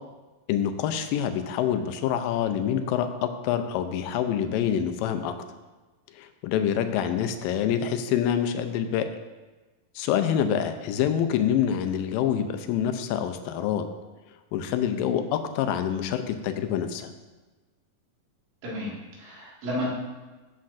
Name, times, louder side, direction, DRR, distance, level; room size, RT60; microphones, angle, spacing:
voice 1, 0.5-5.4 6.1-9.1 10.0-13.9 14.5-17.1, left 9 dB, 85° left, 9 dB, 2.3 m, -26 dB
voice 2, 18.6-19.9, equal, 75° right, -5 dB, 3.7 m, -32 dB
11.5 x 7.6 x 2.5 m, 1.2 s
omnidirectional pair, 4.0 m